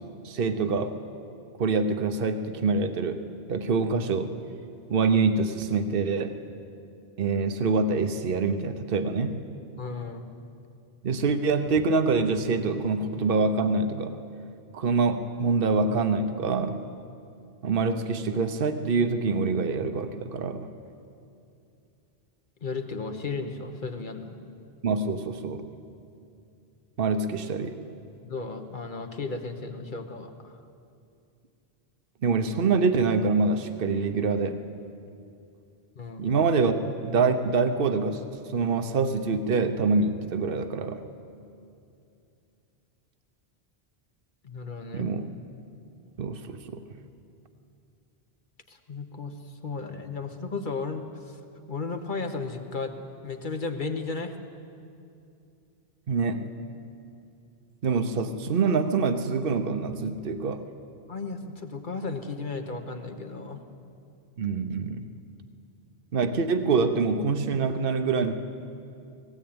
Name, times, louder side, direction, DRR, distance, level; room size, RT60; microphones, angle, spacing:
voice 1, 0.2-0.9 1.6-3.2 3.5-4.3 4.9-6.4 7.2-9.4 11.0-14.1 14.7-16.8 17.6-20.7 24.8-25.7 27.0-27.8 32.2-34.6 36.2-41.0 44.9-45.3 46.2-46.8 56.1-56.4 57.8-60.6 64.4-65.1 66.1-68.3, right 4 dB, 60° right, 9 dB, 1.1 m, -25 dB
voice 2, 9.8-10.2 22.6-24.4 28.2-30.6 35.9-36.3 44.4-45.1 48.7-51.4 51.7-52.9 53.2-54.3 61.1-63.6, left 4 dB, 50° left, 6 dB, 1.5 m, -34 dB
18.5 x 17.0 x 8.8 m, 2.6 s
omnidirectional pair, 1.1 m